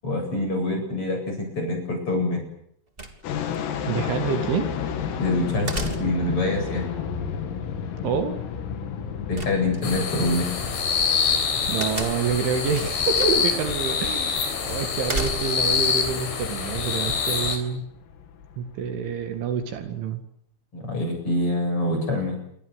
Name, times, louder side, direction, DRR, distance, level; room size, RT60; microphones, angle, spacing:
voice 1, 0.0-2.4 5.2-6.8 9.3-10.5 20.7-22.4, left 2 dB, 25° left, 3 dB, 8.8 m, -25 dB
sound 1, 3.0-3.6 5.7-6.4 9.3-10.1 11.8-12.4 13.1-13.6 13.9-14.0 15.0-15.8, right 2 dB, 20° right, 1.6 m, -32 dB
sound 2, 3.2-20.0, left 7 dB, 80° left, 5.2 m, -33 dB
voice 2, 3.9-4.7 8.0-8.4 11.7-17.9 18.6-20.2, right 6 dB, 70° right, 7 dB, 4.3 m, -27 dB
sound 3, 9.8-17.6, left 6 dB, 65° left, 6.0 m, -25 dB
28.0 x 24.5 x 8.3 m, 0.73 s
omnidirectional pair, 6.0 m